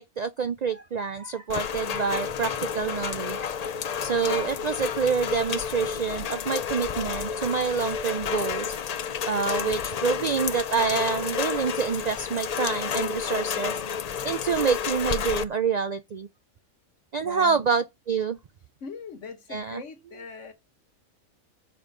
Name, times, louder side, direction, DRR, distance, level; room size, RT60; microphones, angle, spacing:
voice 1, 0.0-3.6 4.0-8.7 9.3-13.8 14.2-16.3 17.1-18.4 19.5-19.8, right 5 dB, 75° right, 0.3 m, -27 dB
Rain, 1.5-15.4, left 7 dB, 80° left, 0.3 m, -30 dB
voice 2, 17.2-17.8 18.8-20.5, left 5 dB, 65° left, 1.7 m, -41 dB
7.0 x 5.2 x 6.1 m
omnidirectional pair, 1.4 m